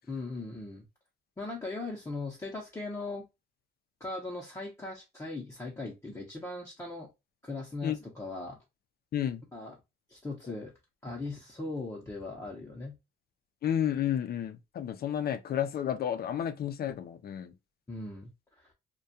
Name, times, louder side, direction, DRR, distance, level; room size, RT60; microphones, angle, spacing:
voice 1, 0.1-0.8 1.4-3.2 4.0-7.1 7.4-8.6 9.5-9.8 10.1-10.7 11.0-13.0 17.9-18.3 18.6-18.7, left 2 dB, 15° left, 0.7 m, -39 dB
voice 2, 13.6-17.5, left 10 dB, 50° left, 0.4 m, -31 dB
2.3 x 2.2 x 2.6 m
cardioid pair, 90°, 20 cm